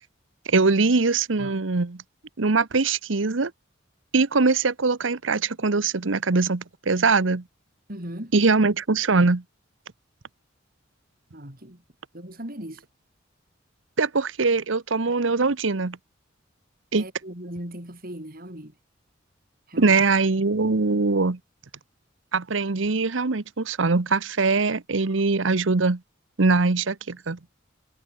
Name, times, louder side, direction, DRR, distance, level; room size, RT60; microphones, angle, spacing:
voice 1, 0.5-2.0 2.4-3.5 4.1-7.4 8.3-9.4 14.0-16.0 16.9-17.1 19.8-21.4 22.3-26.0 26.4-27.5, right 3 dB, 80° right, 1.0 m, -22 dB
voice 2, 7.9-8.3 11.3-11.8 12.1-12.8 16.9-18.7 19.7-20.0, right 1 dB, 45° right, 5.5 m, -38 dB
head